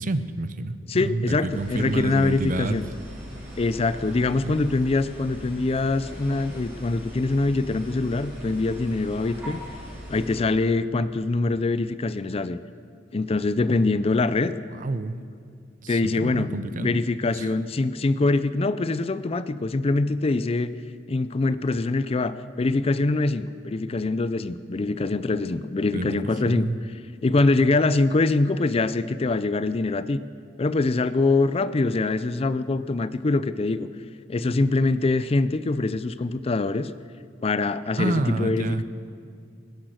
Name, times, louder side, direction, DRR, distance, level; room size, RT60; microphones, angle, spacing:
voice 1, 0.0-2.8 4.4-4.6 14.7-15.2 15.8-17.0 17.3-17.5 25.9-26.8 38.0-38.8, right 2 dB, 45° right, 12 dB, 0.6 m, -29 dB
voice 2, 0.9-2.9 3.6-9.6 10.1-12.6 13.1-14.5 15.9-20.7 21.1-26.7 27.2-30.2 30.6-33.9 34.3-36.9 37.4-38.8, left 3 dB, 30° left, 14 dB, 0.4 m, -24 dB
sound 1, 1.5-10.4, equal, 10° right, 4.7 m, -40 dB
21.0 x 10.5 x 6.4 m, 2.3 s
head